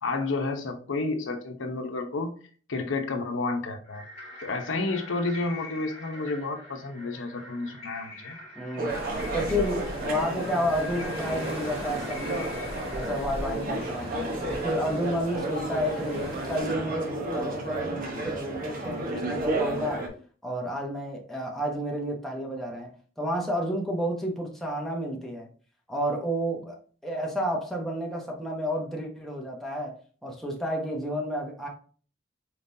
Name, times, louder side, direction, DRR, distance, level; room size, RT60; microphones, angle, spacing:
voice 1, 0.0-2.3 2.7-4.0 4.4-8.4, left 3 dB, 90° left, 5 dB, 0.7 m, -30 dB
sound 1, 3.8-13.4, left 2 dB, 35° left, 2.0 m, -44 dB
voice 2, 8.6-8.9 9.3-12.5 12.9-14.1 14.5-20.1 20.4-25.5 25.9-26.8 27.0-31.7, equal, ahead, -1 dB, 0.9 m, -31 dB
sound 2, 8.8-20.1, right 2 dB, 50° right, 1.0 m, -32 dB
sound 3, 8.9-16.6, equal, 30° right, 2.2 m, -39 dB
4.6 x 3.7 x 2.7 m, 0.42 s
head